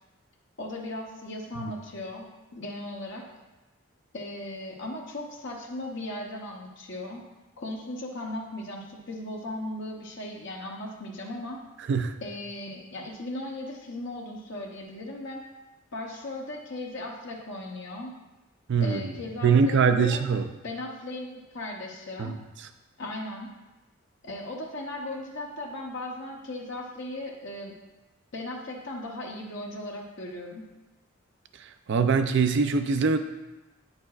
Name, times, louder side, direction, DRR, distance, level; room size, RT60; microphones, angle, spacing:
voice 1, 0.6-3.2 4.1-7.2 7.6-11.6 12.2-15.4 15.9-18.1 18.8-20.2 20.6-22.3 23.0-23.5 24.2-27.8 28.3-30.6, left 1 dB, 60° left, -1 dB, 0.9 m, -37 dB
voice 2, 18.7-19.1 19.4-20.5 22.2-22.3 31.9-33.2, right 5 dB, 55° right, 9 dB, 0.4 m, -22 dB
9.3 x 6.6 x 2.4 m, 1.1 s
head